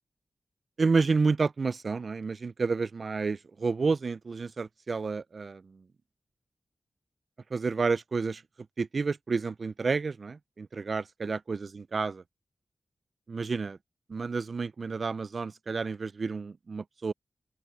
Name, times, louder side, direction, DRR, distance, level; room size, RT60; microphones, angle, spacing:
voice 1, 0.8-5.6 7.5-8.4 8.8-12.2 13.3-13.8 14.1-17.1, right 4 dB, 55° right, 0.3 m, -30 dB
open air
wide cardioid pair, 110°, 0 cm